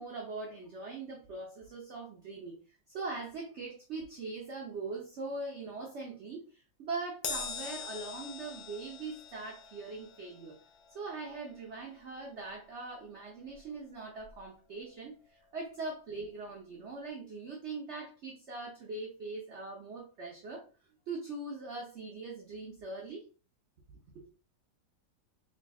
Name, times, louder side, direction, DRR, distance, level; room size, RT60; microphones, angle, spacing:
voice 1, 0.0-2.6 2.9-10.6 10.9-20.7 21.1-23.2 24.1-24.3, right 3 dB, 60° right, 0.7 m, -41 dB
Crash cymbal, 7.2-13.9 14.2-14.4 15.5-15.6, left 5 dB, 65° left, 1.0 m, -44 dB
3.6 x 3.4 x 2.3 m
omnidirectional pair, 1.9 m